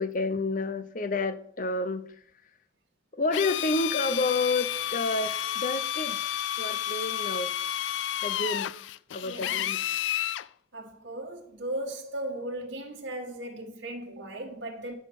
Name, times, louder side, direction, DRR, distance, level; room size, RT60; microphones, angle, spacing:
voice 1, 0.0-2.1 3.2-6.2 6.6-7.5 8.2-8.7 9.1-9.8, left 3 dB, 45° left, 0.6 m, -29 dB
Drill, 3.3-10.5, left 12 dB, 75° left, 0.3 m, -31 dB
voice 2, 9.2-9.6 10.7-14.9, right 1 dB, 85° right, 1.6 m, -37 dB
9.9 x 5.1 x 6.1 m
head